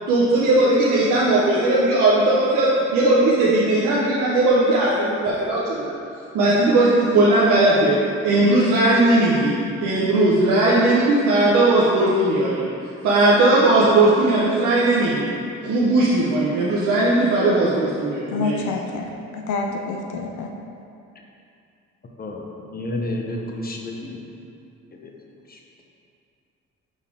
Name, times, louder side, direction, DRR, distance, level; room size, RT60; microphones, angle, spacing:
voice 1, 0.1-5.9 6.3-8.0 8.2-12.7 13.0-15.3 15.6-18.6, right 2 dB, 80° right, -8 dB, 0.9 m, -18 dB
voice 2, 18.3-20.5, left 4 dB, 75° left, 2 dB, 0.7 m, -28 dB
voice 3, 22.7-24.2 24.9-25.1 25.5-25.6, left 1 dB, 30° left, 0 dB, 0.9 m, -30 dB
6.3 x 4.1 x 3.7 m, 2.6 s
cardioid pair, 90°, 30 cm